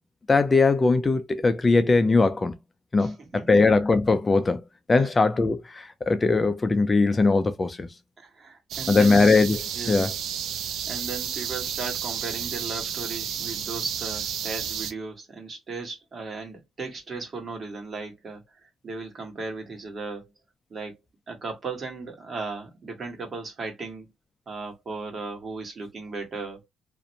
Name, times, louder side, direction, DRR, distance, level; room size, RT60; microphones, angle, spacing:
voice 1, 0.3-2.5 2.9-4.6 4.9-7.9 8.9-10.1, left 3 dB, 25° left, 0.4 m, -20 dB
voice 2, 3.0-3.6 5.0-5.1 8.2-9.2 9.7-10.1 10.9-20.3 20.7-21.0 21.3-24.1 24.5-26.6, right 4 dB, 45° right, 1.2 m, -36 dB
sound 1, 8.7-14.9, right 8 dB, 75° right, 0.3 m, -32 dB
2.5 x 2.1 x 2.7 m
cardioid pair, 90°, 0 cm